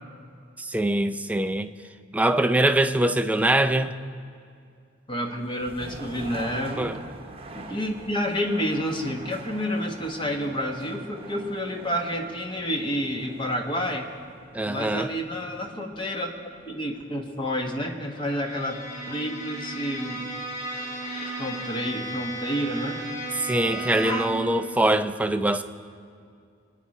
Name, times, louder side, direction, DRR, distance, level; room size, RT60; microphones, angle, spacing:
voice 1, 0.6-1.7 2.1-3.9 6.8-7.0 14.5-15.1 23.4-25.6, right 1 dB, 5° right, 9 dB, 0.4 m, -23 dB
voice 2, 5.1-6.9 7.5-14.1 14.6-16.3 16.7-18.8 19.1-20.2 21.4-23.0 24.0-24.2, equal, 25° left, 3 dB, 1.2 m, -29 dB
sound 1, 5.4-17.2, right 2 dB, 30° right, 1.0 m, -44 dB
Bowed string instrument, 18.1-24.5, right 2 dB, 45° left, 4.2 m, -35 dB
23.0 x 9.2 x 4.2 m, 2.3 s
head